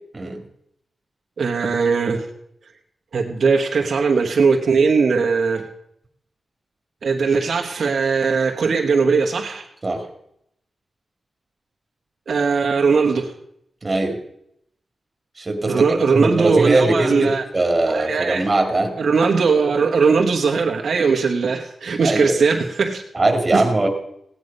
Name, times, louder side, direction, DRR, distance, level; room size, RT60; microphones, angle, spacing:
voice 1, 1.4-2.2 3.1-5.7 7.0-9.7 12.3-13.3 15.7-17.4 17.9-18.5 19.0-23.0 23.5-23.6, right 5 dB, 60° right, 2 dB, 1.2 m, -19 dB
voice 2, 13.8-14.2 15.4-15.8 16.1-19.0 22.0-22.4 23.1-23.9, right 2 dB, 25° right, 3 dB, 2.3 m, -20 dB
17.0 x 9.9 x 5.4 m, 0.75 s
wide cardioid pair, 160°, 0 cm